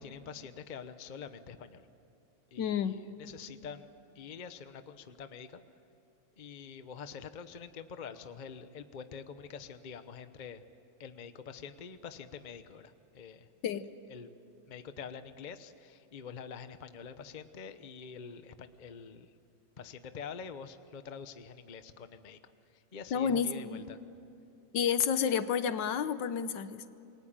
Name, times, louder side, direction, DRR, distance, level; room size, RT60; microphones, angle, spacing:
voice 1, 0.0-1.9 2.5-3.9 4.1-5.6 6.4-10.6 11.0-13.5 14.1-14.3 14.7-19.3 19.8-24.0, left 6 dB, 35° left, 10 dB, 0.7 m, -46 dB
voice 2, 2.6-3.0 13.6-13.9 23.1-23.8 24.7-26.8, left 7 dB, 70° left, 12 dB, 1.6 m, -30 dB
28.5 x 22.5 x 8.9 m, 2.6 s
omnidirectional pair, 2.1 m